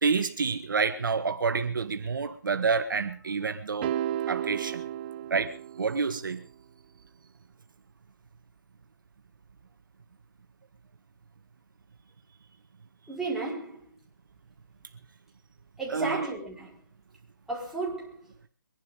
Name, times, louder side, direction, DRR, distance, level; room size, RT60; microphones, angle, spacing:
voice 1, 0.0-3.9 4.3-4.8 5.3-6.4 15.9-16.3, right 5 dB, 70° right, 1.8 m, -28 dB
sound 1, 3.8-6.2, right 11 dB, 30° right, 0.7 m, -33 dB
voice 2, 13.1-13.9 15.8-16.8 17.5-18.2, right 3 dB, ahead, 4.7 m, -33 dB
23.5 x 11.5 x 5.1 m
hypercardioid pair, 160°, 11 cm